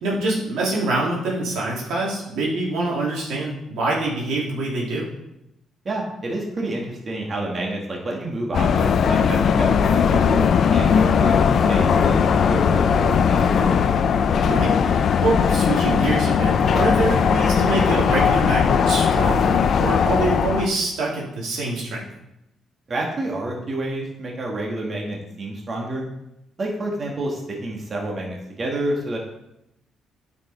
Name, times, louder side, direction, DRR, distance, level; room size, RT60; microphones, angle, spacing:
voice 1, 0.0-5.1 14.4-22.1, right 2 dB, 85° right, -4 dB, 2.3 m, -25 dB
voice 2, 5.8-13.8 22.9-26.0 26.6-29.2, right 1 dB, 40° right, -1 dB, 1.7 m, -29 dB
sound 1, 8.5-20.7, left 7 dB, 60° left, 0.5 m, -18 dB
9.2 x 5.3 x 4.0 m, 0.86 s
cardioid pair, 90°, 0 cm